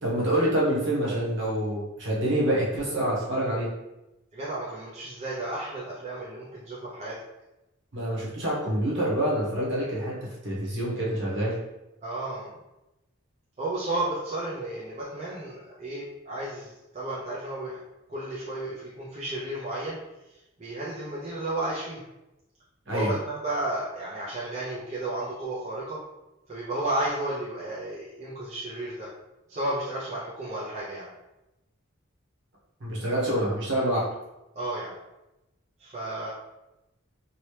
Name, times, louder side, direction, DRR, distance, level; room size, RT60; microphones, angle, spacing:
voice 1, 0.0-3.7 7.9-10.1 10.4-11.5 22.9-23.1 32.8-34.0, right 1 dB, 60° right, -5 dB, 1.2 m, -26 dB
voice 2, 4.3-7.2 12.0-12.6 13.6-17.8 18.1-20.0 20.3-22.0 22.9-26.0 26.5-29.1 29.5-31.1 34.5-34.9 35.8-36.3, right 1 dB, 30° right, -8 dB, 0.6 m, -33 dB
2.9 x 2.9 x 3.2 m, 0.96 s
head